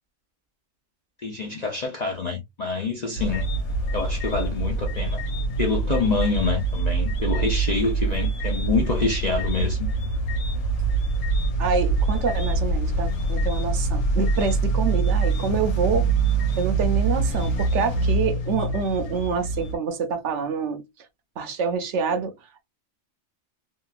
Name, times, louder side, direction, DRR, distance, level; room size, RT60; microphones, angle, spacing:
voice 1, 1.2-3.5 3.9-5.2 5.6-9.9, left 4 dB, 55° left, 0.5 m, -26 dB
sound 1, 3.1-19.7, right 3 dB, 80° left, 1.3 m, -24 dB
voice 2, 11.6-16.1 16.6-20.8 21.4-22.3, right 5 dB, 70° right, 0.8 m, -27 dB
2.9 x 2.3 x 2.3 m
omnidirectional pair, 1.3 m